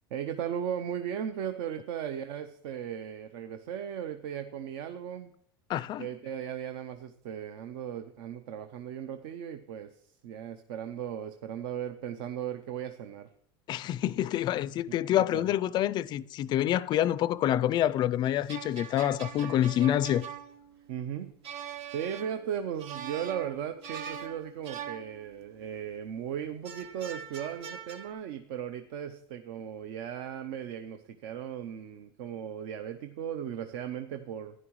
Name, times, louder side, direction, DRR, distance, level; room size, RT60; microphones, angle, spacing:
voice 1, 0.1-5.3 6.0-9.9 10.2-13.3 14.9-15.5 20.9-21.3 21.9-34.5, right 9 dB, 65° right, 0.6 m, -37 dB
voice 2, 5.7-6.1 13.7-20.3, left 12 dB, 35° left, 0.3 m, -27 dB
sound 1, 18.3-25.7 26.6-28.1, right 8 dB, 90° right, 1.1 m, -43 dB
11.0 x 10.5 x 3.1 m
supercardioid pair, 125°, 13 cm